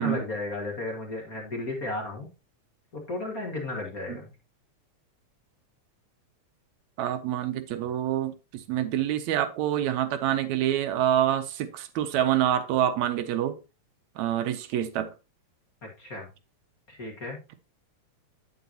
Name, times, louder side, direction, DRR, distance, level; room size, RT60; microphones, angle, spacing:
voice 1, 0.0-2.3 2.9-4.3 15.8-16.3 16.9-17.4, left 2 dB, 35° left, 1.9 m, -34 dB
voice 2, 7.0-13.6 14.2-15.1, right 11 dB, 80° right, 1.9 m, -26 dB
9.1 x 8.0 x 2.8 m
omnidirectional pair, 3.4 m